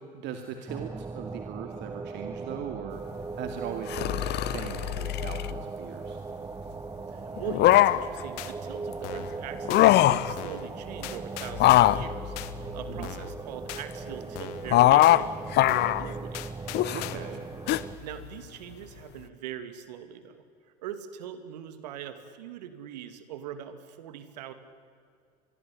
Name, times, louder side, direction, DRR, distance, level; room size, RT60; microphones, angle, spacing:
voice 1, 0.1-6.2 12.9-13.1 16.8-17.4, right 8 dB, 60° right, 6 dB, 2.4 m, -39 dB
sound 1, 0.7-18.0, right 4 dB, 15° right, 0.8 m, -39 dB
sound 2, 3.9-5.5 7.4-8.2 9.6-10.3 11.5-13.3 14.7-15.3 15.5-16.1 16.7-17.1 17.7-17.8, left 15 dB, 55° left, 1.0 m, -22 dB
voice 2, 7.1-15.3 15.6-16.4 18.0-20.4 20.8-24.5, right 10 dB, 80° right, 11 dB, 2.3 m, -41 dB
sound 3, 7.7-8.0 8.4-8.5 9.0-9.4 9.7-9.9 10.4-10.7 11.0-12.0 12.3-12.5 13.0-13.3 13.7-13.8 14.3-14.7 15.0-15.2 15.7-16.0 16.3-17.3 17.7-17.8, left 15 dB, 70° left, 1.7 m, -40 dB
26.0 x 21.5 x 10.0 m, 2.3 s
hypercardioid pair, 75°, 21 cm